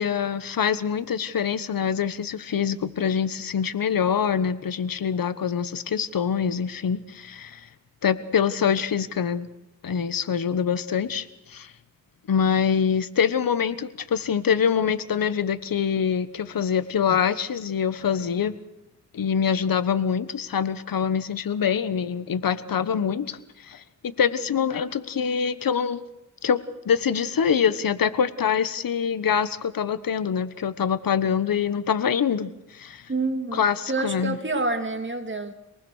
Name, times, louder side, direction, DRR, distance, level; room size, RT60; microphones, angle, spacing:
voice 1, 0.0-7.7 8.0-9.5 9.8-11.7 12.3-18.6 19.1-23.8 24.2-26.0 26.4-33.1 33.5-34.4, left 7 dB, 75° left, 14 dB, 1.3 m, -25 dB
voice 2, 33.1-35.5, right 3 dB, 35° right, 6 dB, 2.8 m, -28 dB
26.5 x 19.5 x 6.5 m, 0.90 s
cardioid pair, 75°, 35 cm